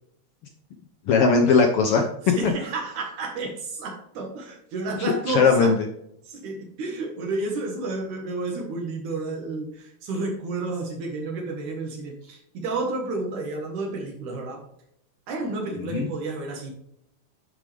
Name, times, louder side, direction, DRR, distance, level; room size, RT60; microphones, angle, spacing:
voice 1, 1.1-2.1 5.0-5.8 15.8-16.1, left 4 dB, 75° left, 4 dB, 1.3 m, -19 dB
voice 2, 2.3-5.7 6.3-14.6 15.3-16.7, right 3 dB, 75° right, 0 dB, 2.8 m, -31 dB
11.5 x 5.0 x 3.4 m, 0.75 s
omnidirectional pair, 3.5 m